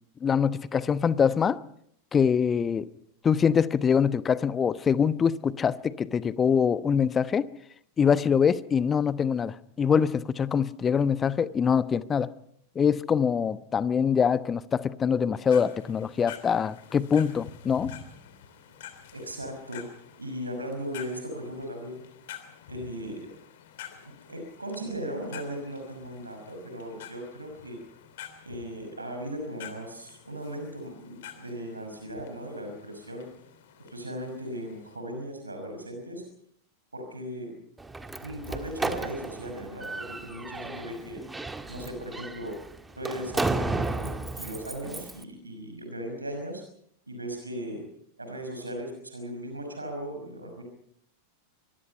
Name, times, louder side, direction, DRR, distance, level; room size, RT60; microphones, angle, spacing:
voice 1, 0.2-1.6 2.1-2.9 3.2-7.4 8.0-12.3 12.7-17.9, left 7 dB, 20° left, 16 dB, 1.0 m, -24 dB
sound 1, 15.3-35.0, left 10 dB, 55° left, 3.1 m, -48 dB
voice 2, 19.1-19.9 20.2-22.0 22.6-23.2 24.2-27.8 28.4-33.3 33.8-36.2 36.9-37.5 38.2-41.2 41.7-42.6 43.0-46.6 47.1-47.8 48.2-50.6, equal, 80° right, 4 dB, 5.7 m, -37 dB
Slam, 37.8-45.2, right 3 dB, 10° right, 1.7 m, -34 dB
24.5 x 23.0 x 5.6 m, 0.66 s
figure-of-eight pair, 90°, 0 cm